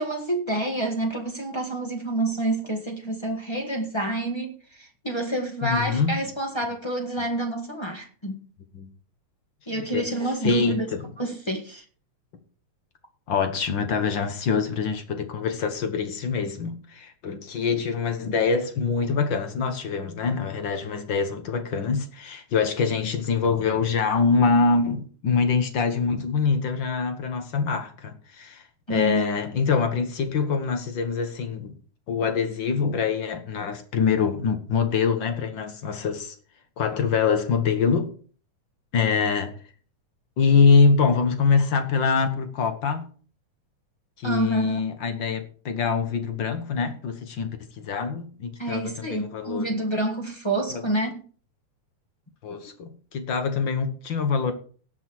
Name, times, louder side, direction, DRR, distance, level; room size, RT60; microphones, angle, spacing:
voice 1, 0.0-8.4 9.7-10.9 11.2-11.8 28.9-29.3 44.2-44.8 48.6-51.2, right 1 dB, 25° left, 0.6 m, -28 dB
voice 2, 5.6-6.2 8.7-8.9 9.7-10.1 10.4-11.1 13.3-28.6 28.9-31.7 32.1-36.3 36.8-38.1 38.9-39.5 40.4-43.1 44.2-49.7 50.7-50.8 52.4-54.5, left 5 dB, 50° left, 1.5 m, -24 dB
18.0 x 6.1 x 4.6 m
omnidirectional pair, 3.5 m